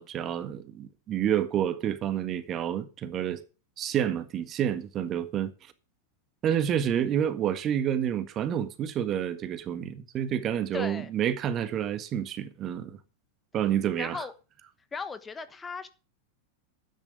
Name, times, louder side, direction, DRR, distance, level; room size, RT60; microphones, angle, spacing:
voice 1, 0.0-3.4 3.8-5.5 6.4-13.0 13.5-14.2, right 10 dB, 30° right, 1.6 m, -29 dB
voice 2, 10.7-11.1 14.0-14.3 14.9-15.9, left 5 dB, 15° left, 1.2 m, -36 dB
12.5 x 9.7 x 5.1 m
figure-of-eight pair, 90°, 0 cm